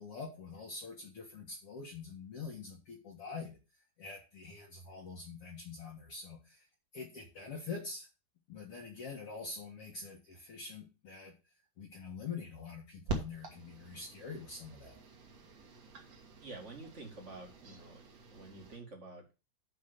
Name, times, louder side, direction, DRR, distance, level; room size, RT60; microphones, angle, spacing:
voice 1, 0.0-3.6 4.0-6.7 6.9-8.1 8.5-11.3 11.8-15.0, left 4 dB, 50° left, -2 dB, 2.2 m, -45 dB
sound 1, 13.1-18.8, right 3 dB, 50° right, 2.7 m, -45 dB
voice 2, 16.4-18.0 18.3-19.2, right 3 dB, 25° right, 2 dB, 1.9 m, -48 dB
7.7 x 5.5 x 6.8 m, 0.29 s
omnidirectional pair, 4.3 m